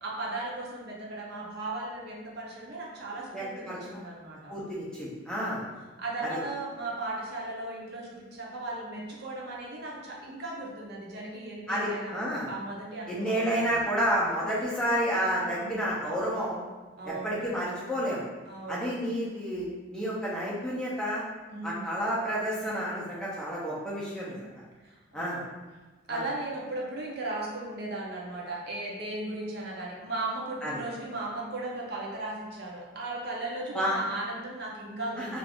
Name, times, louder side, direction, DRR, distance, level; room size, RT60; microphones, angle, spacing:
voice 1, 0.0-4.5 5.4-5.6 6.0-13.8 15.4-15.9 17.0-17.4 18.5-18.9 21.5-21.9 24.3-24.4 24.8-25.5 26.1-35.4, right 2 dB, 55° right, -3 dB, 0.5 m, -37 dB
voice 2, 3.3-4.0 4.5-5.6 6.2-6.4 11.7-12.5 13.1-16.6 17.0-18.2 18.7-21.2 21.6-24.4 25.1-25.4 26.1-26.2 30.6-30.8 33.7-34.0 35.1-35.4, equal, 5° left, -7 dB, 0.5 m, -30 dB
2.4 x 2.4 x 3.4 m, 1.2 s
head